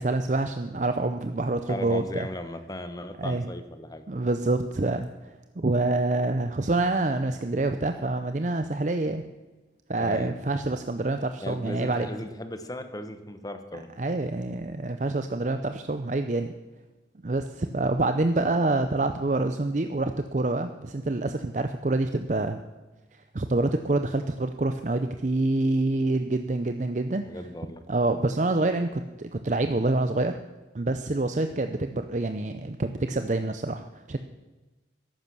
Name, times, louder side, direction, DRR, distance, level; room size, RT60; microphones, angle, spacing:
voice 1, 0.0-2.3 3.2-3.4 4.1-5.1 5.6-9.2 9.9-12.1 14.0-16.5 17.2-22.6 23.3-27.2 27.9-30.4 30.7-34.2, right 2 dB, 40° right, 8 dB, 0.6 m, -26 dB
voice 2, 1.7-4.0 10.0-10.4 11.4-13.9 27.2-27.8, left 1 dB, 20° left, 9 dB, 1.0 m, -37 dB
14.0 x 11.0 x 6.1 m, 1.2 s
head